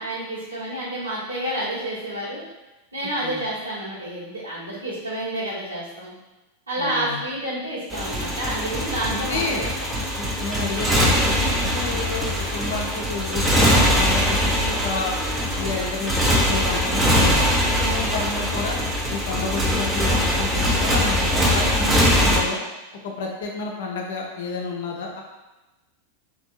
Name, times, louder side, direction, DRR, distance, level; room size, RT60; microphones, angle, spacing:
voice 1, 0.0-2.4 2.9-6.1 6.7-9.9, right 1 dB, 80° right, -11 dB, 1.4 m, -29 dB
voice 2, 6.8-7.2 9.1-9.7 10.2-15.1 15.6-18.8 19.1-22.6 23.0-25.2, left 4 dB, 55° left, 0 dB, 0.5 m, -30 dB
Motorcycle, 7.9-22.4, equal, 10° right, 0.5 m, -22 dB
2.7 x 2.6 x 2.6 m, 1.1 s
figure-of-eight pair, 90°, 0 cm